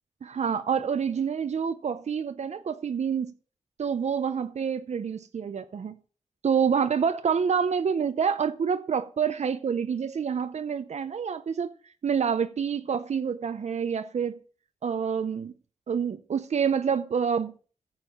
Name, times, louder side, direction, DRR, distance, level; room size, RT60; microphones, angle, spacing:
voice 1, 0.2-3.3 3.8-6.0 6.4-11.7 12.0-14.4 14.8-15.5 15.9-17.5, right 7 dB, 70° right, 0.6 m, -27 dB
14.5 x 7.3 x 3.7 m
wide cardioid pair, 90°, 12 cm